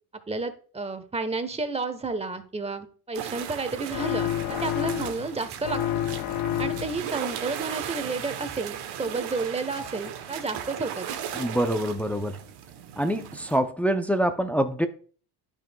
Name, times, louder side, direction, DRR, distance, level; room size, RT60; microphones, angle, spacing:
voice 1, 0.3-5.8 6.6-11.1, right 3 dB, 15° right, 1.0 m, -31 dB
sound 1, 3.1-13.6, right 9 dB, 60° right, 1.1 m, -37 dB
sound 2, 3.9-5.3 5.6-7.1, left 12 dB, 50° left, 0.5 m, -29 dB
voice 2, 11.3-12.4 13.0-14.9, right 1 dB, 5° left, 0.5 m, -25 dB
10.5 x 6.1 x 2.3 m
supercardioid pair, 90°, 45 cm